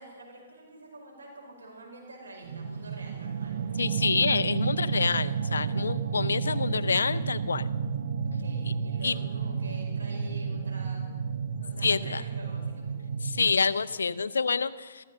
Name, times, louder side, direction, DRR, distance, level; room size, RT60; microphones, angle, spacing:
voice 1, 0.0-3.6 8.2-11.1 11.6-13.0, right 2 dB, 85° right, 0 dB, 5.7 m, -47 dB
sound 1, 2.4-13.5, right 6 dB, 65° right, 0.7 m, -31 dB
voice 2, 3.8-7.7 8.7-8.8 9.0-9.1 11.8-12.2 13.2-15.0, left 5 dB, 80° left, 15 dB, 0.6 m, -27 dB
14.5 x 14.5 x 6.6 m, 1.4 s
hypercardioid pair, 130°, 0 cm